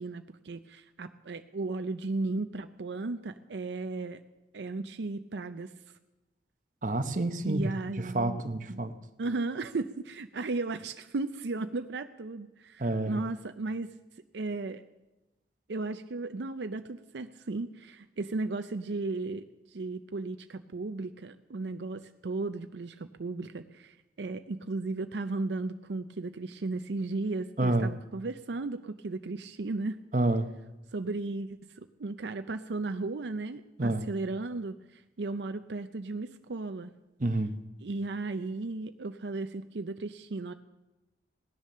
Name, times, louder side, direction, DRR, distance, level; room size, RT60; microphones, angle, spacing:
voice 1, 0.0-4.2 4.5-5.7 7.4-8.4 8.7-8.8 9.2-13.9 14.3-14.8 15.7-30.0 30.9-36.9 37.8-40.5, right 3 dB, 80° right, 9 dB, 0.6 m, -35 dB
voice 2, 6.8-7.7 8.0-9.0 12.8-13.2 27.6-27.9 30.1-30.5 33.8-34.1 37.2-37.6, right 2 dB, 45° right, 8 dB, 1.0 m, -28 dB
17.5 x 10.5 x 6.7 m, 1.0 s
head